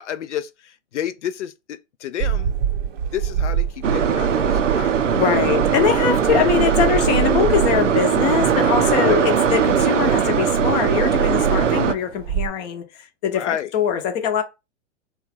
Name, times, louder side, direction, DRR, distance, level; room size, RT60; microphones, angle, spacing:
voice 1, 0.0-2.5 3.1-4.9 8.9-9.2 13.3-13.7, left 10 dB, 75° left, 0.5 m, -30 dB
sound 1, 2.2-12.5, right 8 dB, 45° right, 0.6 m, -28 dB
sound 2, 3.8-11.9, right 7 dB, 90° right, 0.6 m, -19 dB
voice 2, 5.1-14.4, left 8 dB, 35° left, 0.7 m, -22 dB
3.2 x 2.3 x 4.2 m
hypercardioid pair, 115°, 36 cm